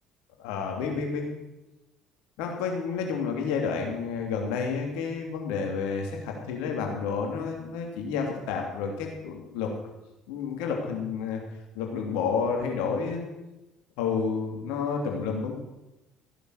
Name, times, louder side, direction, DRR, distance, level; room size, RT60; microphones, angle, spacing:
voice 1, 0.4-1.3 2.4-9.7 10.3-11.4 11.7-13.2 14.0-15.5, left 5 dB, 70° left, 2 dB, 3.0 m, -30 dB
14.5 x 10.0 x 6.6 m, 0.99 s
hypercardioid pair, 60°, 0 cm